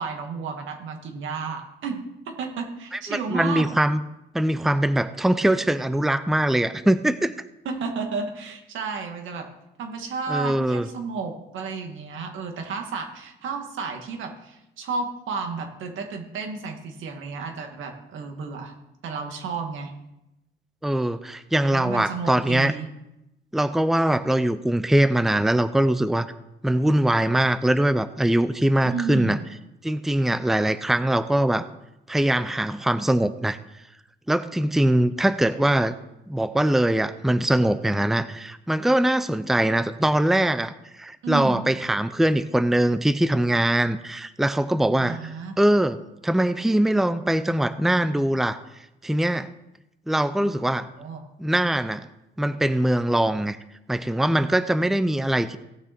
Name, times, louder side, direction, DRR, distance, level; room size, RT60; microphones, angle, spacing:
voice 1, 0.0-3.7 7.7-9.5 9.8-18.7 19.0-19.9 21.7-22.9 28.9-29.4 41.2-41.7 45.0-45.6 50.4-51.2, right 4 dB, 80° right, 4 dB, 2.1 m, -32 dB
voice 2, 2.9-4.0 4.3-7.3 10.3-10.9 20.8-22.7 23.5-26.3 26.6-29.4 29.8-31.7 32.1-33.6 34.3-35.9 36.3-45.3 45.6-46.0 46.2-48.6 49.0-49.5 50.1-50.9 51.4-52.1 52.4-53.6 53.9-55.6, right 1 dB, ahead, 12 dB, 0.6 m, -22 dB
17.0 x 6.6 x 4.5 m, 0.90 s
cardioid pair, 90°, 20 cm